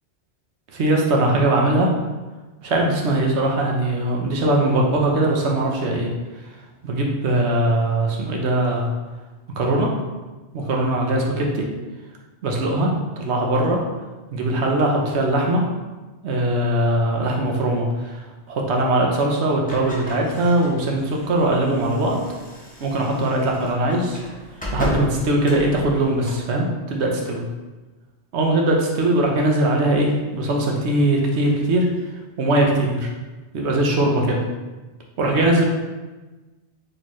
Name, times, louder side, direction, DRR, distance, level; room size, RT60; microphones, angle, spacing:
voice 1, 0.7-1.9 2.6-6.1 6.8-8.9 9.6-9.9 10.5-11.6 12.4-12.9 13.2-13.8 14.3-15.7 16.2-18.2 18.5-22.2 22.8-24.2 24.7-27.4 28.3-31.9 32.4-33.1 33.5-34.4 35.2-35.6, right 1 dB, 80° right, 0 dB, 1.0 m, -20 dB
sound 1, 19.6-26.5, left 1 dB, 10° left, 0.7 m, -34 dB
4.3 x 3.1 x 3.0 m, 1.2 s
omnidirectional pair, 1.1 m